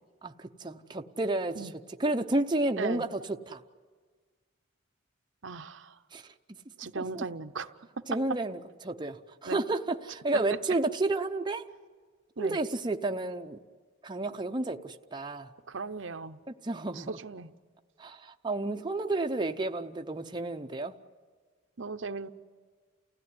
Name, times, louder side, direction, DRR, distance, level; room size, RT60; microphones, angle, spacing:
voice 1, 0.2-3.6 6.1-6.3 7.0-7.3 8.1-11.7 12.4-13.6 14.0-15.5 16.5-17.2 18.0-20.9, right 2 dB, 20° right, 0.7 m, -31 dB
voice 2, 5.4-5.9 6.8-7.7 9.5-9.6 12.4-12.6 15.7-16.4 17.0-17.5 21.8-22.3, right 4 dB, 65° right, 0.8 m, -37 dB
29.5 x 16.5 x 9.6 m
head